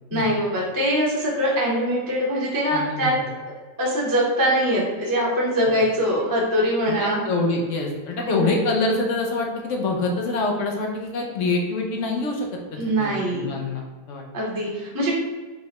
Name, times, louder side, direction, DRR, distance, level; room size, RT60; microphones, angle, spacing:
voice 1, 0.1-3.2 3.8-7.2 8.2-8.6 12.8-13.5 14.3-15.2, equal, 15° right, -5 dB, 0.7 m, -23 dB
voice 2, 2.7-3.1 5.7-5.8 6.9-14.2, left 3 dB, 65° left, 1 dB, 0.8 m, -26 dB
4.7 x 2.2 x 4.1 m, 1.4 s
omnidirectional pair, 1.8 m